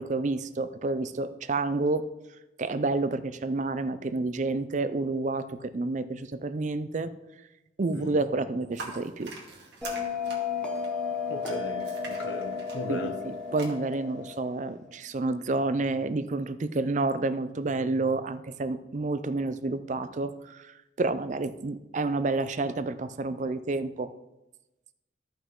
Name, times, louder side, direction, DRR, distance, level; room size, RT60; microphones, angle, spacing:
voice 1, 0.0-2.0 2.6-7.1 7.8-9.3 12.9-24.1, right 3 dB, 40° right, 12 dB, 0.4 m, -29 dB
sound 1, 8.7-13.7, right 3 dB, 65° right, 2.0 m, -44 dB
Bell, 9.8-14.9, left 6 dB, 5° left, 1.2 m, -33 dB
voice 2, 11.3-13.2, left 1 dB, 85° left, 6 dB, 1.1 m, -37 dB
13.5 x 5.5 x 3.7 m, 0.97 s
head